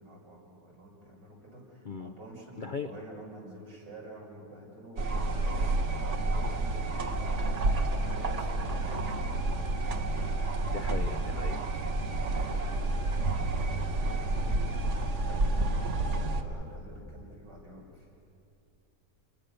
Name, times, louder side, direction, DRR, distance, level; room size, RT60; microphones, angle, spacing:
voice 1, 0.0-10.3 12.1-14.9 15.3-18.1, right 1 dB, 80° right, -3 dB, 6.9 m, -49 dB
voice 2, 2.6-2.9 10.7-11.8 12.3-12.5, left 5 dB, 85° left, 9 dB, 0.4 m, -38 dB
sound 1, 5.0-16.4, right 2 dB, 45° right, 1.5 m, -29 dB
29.0 x 21.5 x 6.8 m, 2.8 s
omnidirectional pair, 1.8 m